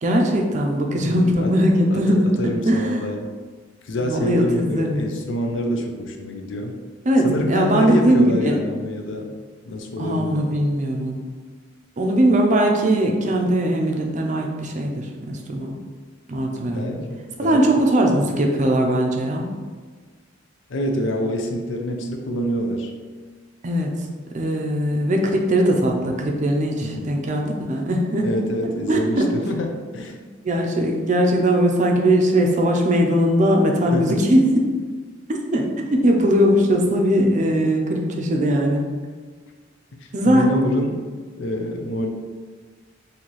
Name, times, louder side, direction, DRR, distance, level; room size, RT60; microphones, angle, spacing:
voice 1, 0.0-3.0 4.0-5.0 7.1-8.6 10.0-11.2 12.0-15.8 16.3-17.0 17.4-19.5 23.6-23.9 24.3-28.3 28.9-29.3 30.4-34.5 35.3-38.8 40.1-40.5, right 1 dB, 40° right, 1 dB, 0.5 m, -20 dB
voice 2, 1.0-1.5 1.9-3.3 3.8-6.7 7.2-9.3 9.6-10.5 16.7-17.9 20.7-22.9 26.8-27.1 28.2-30.2 33.9-34.3 40.2-41.0 41.4-42.1, left 1 dB, 75° left, 3 dB, 0.5 m, -26 dB
4.0 x 2.7 x 3.0 m, 1.5 s
head